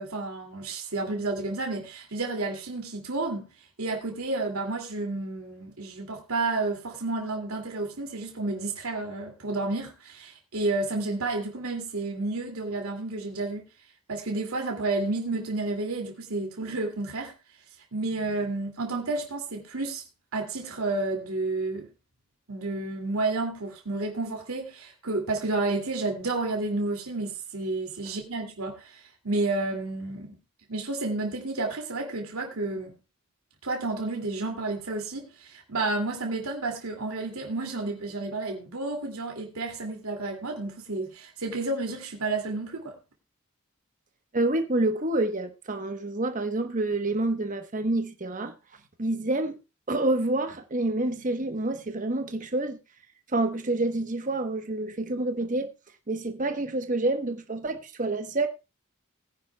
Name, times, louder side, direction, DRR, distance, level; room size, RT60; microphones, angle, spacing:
voice 1, 0.0-3.5 3.8-13.6 14.1-17.3 17.9-20.0 20.3-21.9 22.5-30.4 30.7-33.0 33.6-43.0, right 2 dB, 85° right, 2.4 m, -31 dB
voice 2, 44.3-48.5 49.0-49.6 49.9-52.8 53.3-55.7 56.1-58.5, right 2 dB, 35° right, 1.1 m, -28 dB
20.5 x 10.0 x 2.3 m
head